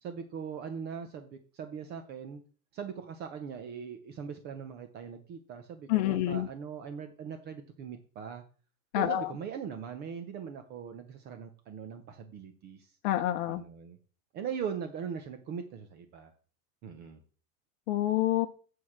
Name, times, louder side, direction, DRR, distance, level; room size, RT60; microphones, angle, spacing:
voice 1, 0.0-2.4 2.7-8.4 8.9-12.9 13.5-14.0 14.3-16.3 16.8-17.2, right 7 dB, 25° right, 7 dB, 0.7 m, -40 dB
voice 2, 5.9-6.5 8.9-9.3 13.0-13.6 17.9-18.5, left 14 dB, 50° left, 5 dB, 0.8 m, -27 dB
8.4 x 4.7 x 7.3 m, 0.41 s
supercardioid pair, 165°, 42 cm